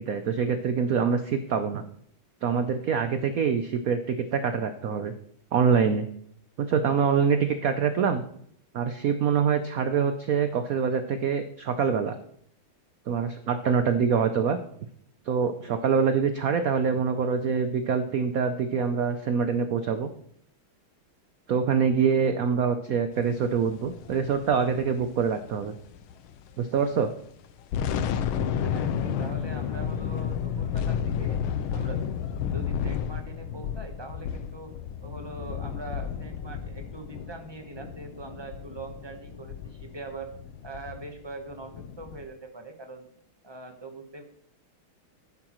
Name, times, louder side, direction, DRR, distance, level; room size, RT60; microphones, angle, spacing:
voice 1, 0.0-1.8 2.4-5.1 5.5-6.1 6.6-8.2 8.7-12.2 13.1-14.6 15.3-20.1 21.5-25.7 26.6-27.1, right 6 dB, 85° right, 8 dB, 0.7 m, -25 dB
sound 1, 23.7-26.5 26.8-26.9 27.4-42.2, left 8 dB, 90° left, 1.5 m, -32 dB
voice 2, 28.3-31.4 31.7-32.0 32.5-34.7 35.0-40.3 40.6-43.1 43.4-44.2, right 3 dB, 25° right, 5 dB, 0.6 m, -42 dB
11.5 x 9.8 x 3.0 m, 0.67 s
omnidirectional pair, 2.3 m